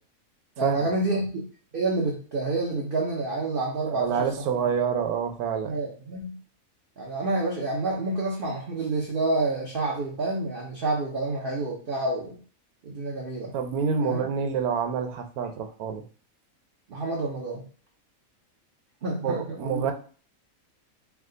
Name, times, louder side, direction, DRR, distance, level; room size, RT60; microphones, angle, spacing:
voice 1, 0.6-1.4 1.7-4.3 5.7-6.4 7.0-12.4 12.8-13.5 14.0-14.3 16.9-17.6 19.0-19.8, right 2 dB, 45° right, -2 dB, 0.9 m, -28 dB
voice 2, 3.9-5.8 13.5-16.0 19.2-19.9, right 6 dB, 85° right, 6 dB, 1.2 m, -27 dB
4.7 x 2.4 x 3.8 m, 0.41 s
omnidirectional pair, 1.5 m